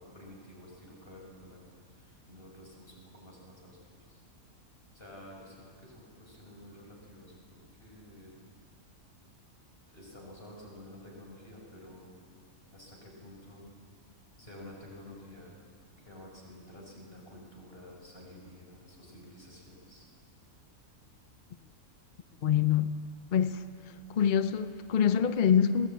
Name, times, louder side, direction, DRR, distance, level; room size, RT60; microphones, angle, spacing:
voice 1, 0.0-4.2 4.9-8.4 9.9-12.2 12.7-13.7 14.4-15.5 16.0-20.1, left 1 dB, 40° left, 5.1 m, -51 dB
voice 2, 22.4-22.9 23.3-23.7 24.1-25.9, left 8 dB, 60° left, 0.5 m, -25 dB
21.5 x 17.0 x 8.5 m
omnidirectional pair, 1.5 m